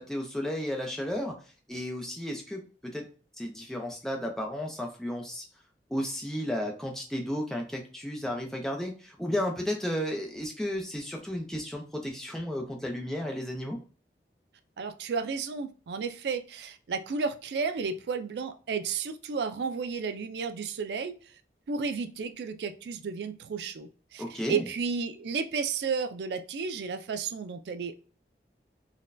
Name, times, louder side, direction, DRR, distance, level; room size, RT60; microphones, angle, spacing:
voice 1, 0.0-1.4 1.7-3.1 3.4-5.5 5.9-13.8 24.2-24.6, left 1 dB, 5° left, 1 dB, 0.5 m, -33 dB
voice 2, 14.8-21.3 21.7-28.0, right 5 dB, 75° right, 10 dB, 0.4 m, -32 dB
3.9 x 2.2 x 2.5 m, 0.39 s
head